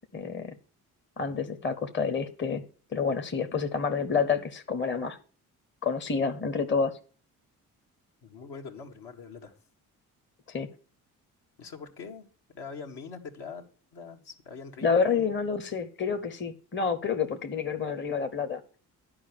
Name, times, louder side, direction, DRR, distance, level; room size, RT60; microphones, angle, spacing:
voice 1, 0.1-0.5 1.2-2.6 2.9-5.2 5.8-7.0 10.5-10.7 14.8-18.6, left 5 dB, 25° left, 1.0 m, -28 dB
voice 2, 8.2-9.6 11.6-15.3, left 5 dB, 60° left, 1.6 m, -43 dB
10.5 x 4.9 x 6.7 m
hypercardioid pair, 45°, 45 cm